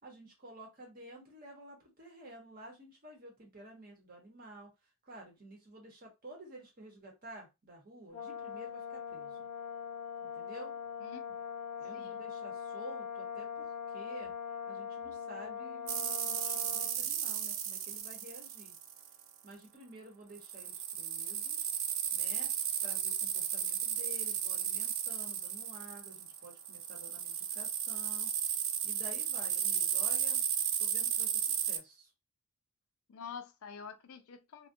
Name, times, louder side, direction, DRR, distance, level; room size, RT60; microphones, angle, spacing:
voice 1, 0.0-4.7 5.0-9.5 10.2-10.8 11.8-14.3 14.7-18.7 19.4-21.7 22.1-22.5 22.8-28.3 28.8-30.4 30.8-32.1, right 1 dB, 40° right, 0.9 m, -51 dB
Brass instrument, 8.1-17.0, left 7 dB, 35° left, 0.7 m, -42 dB
voice 2, 11.0-11.4 11.9-12.2 33.1-34.7, left 6 dB, 70° left, 0.4 m, -47 dB
sound 1, 15.9-19.2 20.4-31.8, right 9 dB, 60° right, 0.3 m, -34 dB
2.3 x 2.1 x 2.6 m
head